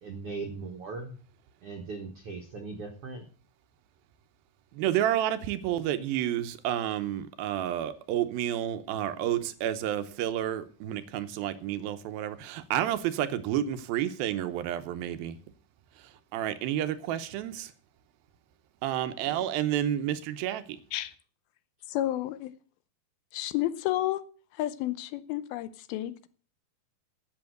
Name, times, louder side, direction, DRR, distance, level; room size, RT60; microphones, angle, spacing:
voice 1, 0.0-1.1 1.6-3.2, right 4 dB, 55° right, 1.7 m, -39 dB
voice 2, 4.7-15.4 16.3-17.7 18.8-20.6, right 11 dB, 80° right, 2.7 m, -30 dB
voice 3, 21.9-22.5 23.3-24.2 24.6-26.3, left 14 dB, 85° left, 2.7 m, -31 dB
11.0 x 7.9 x 7.9 m
omnidirectional pair, 4.3 m